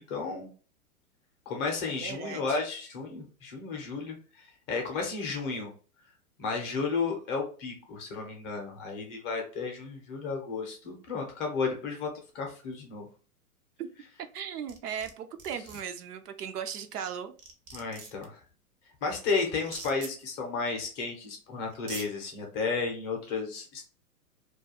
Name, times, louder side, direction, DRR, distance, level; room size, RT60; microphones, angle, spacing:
voice 1, 0.1-0.5 1.5-5.7 6.4-12.1 12.3-13.1 17.7-18.4 19.0-23.8, left 4 dB, 25° left, 0.5 m, -33 dB
voice 2, 2.0-2.6 13.8-13.9 14.2-17.3, right 8 dB, 85° right, 0.6 m, -37 dB
sound 1, 14.7-15.1 15.4-15.8 17.0-17.1 17.4-18.2 19.6-20.1 21.2-21.3 21.7-22.1, right 4 dB, 30° right, 0.4 m, -42 dB
2.3 x 2.2 x 2.8 m
hypercardioid pair, 130°, 45 cm